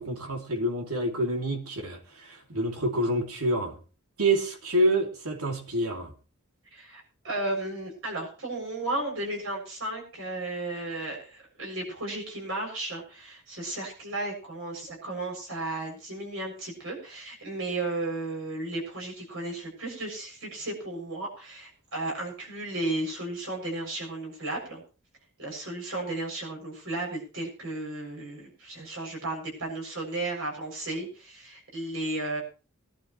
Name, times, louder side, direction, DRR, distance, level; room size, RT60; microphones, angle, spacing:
voice 1, 0.0-3.8 4.2-6.1, right 1 dB, 85° right, 3 dB, 2.8 m, -27 dB
voice 2, 6.7-24.8 25.4-32.4, right 2 dB, 60° right, -1 dB, 7.2 m, -34 dB
21.5 x 11.5 x 3.2 m, 0.34 s
head